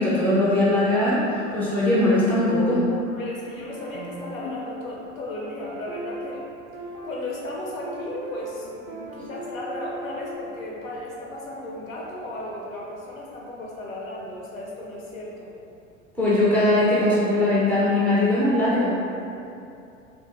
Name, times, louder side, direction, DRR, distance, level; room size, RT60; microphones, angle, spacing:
voice 1, 0.0-2.8 16.2-18.9, left 1 dB, 5° left, -8 dB, 0.3 m, -20 dB
sound 1, 2.0-3.3 3.7-10.4, right 1 dB, 45° right, 0.5 m, -39 dB
voice 2, 3.1-6.5 7.0-15.5, left 1 dB, 75° left, -3 dB, 0.7 m, -35 dB
2.4 x 2.4 x 2.9 m, 2.6 s
figure-of-eight pair, 80°, 41 cm